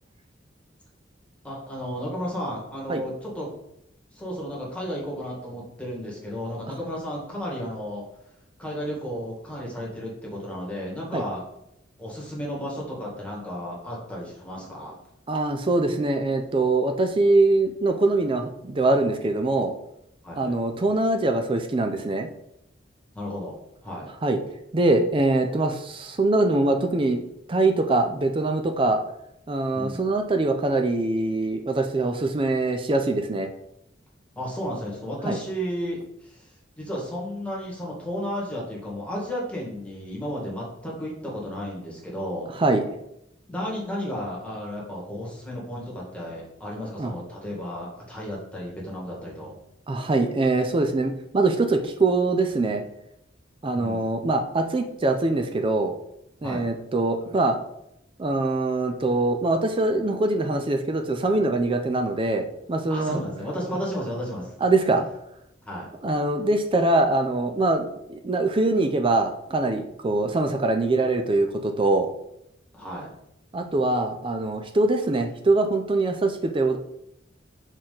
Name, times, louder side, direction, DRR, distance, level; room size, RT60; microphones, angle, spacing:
voice 1, 1.4-3.5 4.1-8.0 8.6-11.4 12.0-15.0 20.2-20.6 23.1-23.6 23.8-24.1 29.7-30.0 34.4-42.5 43.5-49.6 53.7-54.0 56.4-56.6 62.9-64.6 65.6-65.9 72.7-73.1, equal, 5° left, -4 dB, 1.8 m, -33 dB
voice 2, 15.3-19.7 20.4-22.3 24.2-24.4 24.7-27.2 27.5-29.0 29.5-33.5 35.2-35.4 42.6-42.8 47.0-47.1 49.9-52.8 53.6-55.9 56.4-57.6 58.2-63.2 64.6-65.1 66.0-72.1 73.5-76.8, right 2 dB, 30° right, 5 dB, 0.5 m, -23 dB
6.2 x 4.3 x 3.9 m, 0.79 s
head